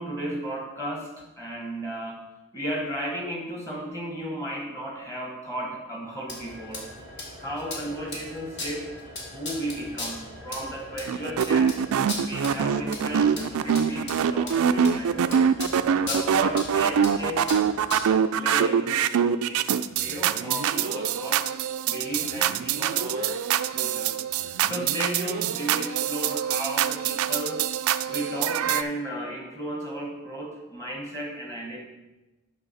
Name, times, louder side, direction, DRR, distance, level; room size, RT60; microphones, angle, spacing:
voice 1, 0.0-2.2 2.5-6.8 7.4-9.0 9.3-11.8 12.2-15.5 16.0-17.5 18.0-21.4 21.9-23.4 23.7-24.2 24.7-27.7 28.1-31.9, equal, 10° left, -1 dB, 1.3 m, -34 dB
sound 1, 6.3-18.1, left 2 dB, 50° left, 1.7 m, -38 dB
sound 2, 11.1-28.8, right 8 dB, 75° right, 0.4 m, -24 dB
8.9 x 5.8 x 4.1 m, 1.0 s
head